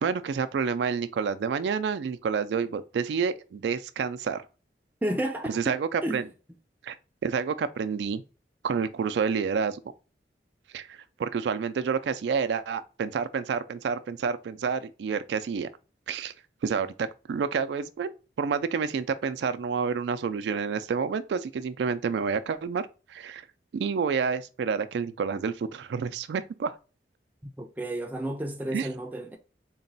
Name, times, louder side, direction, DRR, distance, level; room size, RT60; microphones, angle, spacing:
voice 1, 0.0-4.4 5.5-6.3 6.8-7.0 7.2-8.2 8.6-9.8 10.7-15.7 16.1-16.3 16.6-18.1 18.4-23.4 23.7-26.7 28.7-28.9, right 6 dB, 80° right, 0.3 m, -29 dB
voice 2, 5.0-5.7 6.0-6.3 27.6-29.4, right 1 dB, 10° right, 0.4 m, -31 dB
3.9 x 2.2 x 3.9 m
head